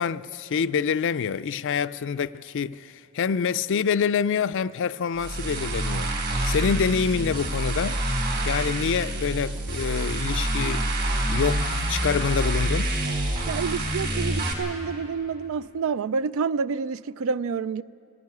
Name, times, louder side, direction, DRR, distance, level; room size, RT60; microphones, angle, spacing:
voice 1, 0.0-8.0 8.5-11.0 11.3-12.9, left 6 dB, 60° left, 0.4 m, -26 dB
sound 1, 5.2-14.5, right 1 dB, 50° right, 4.0 m, -27 dB
voice 2, 13.5-17.8, right 5 dB, 70° right, 0.4 m, -28 dB
19.0 x 16.0 x 9.6 m
head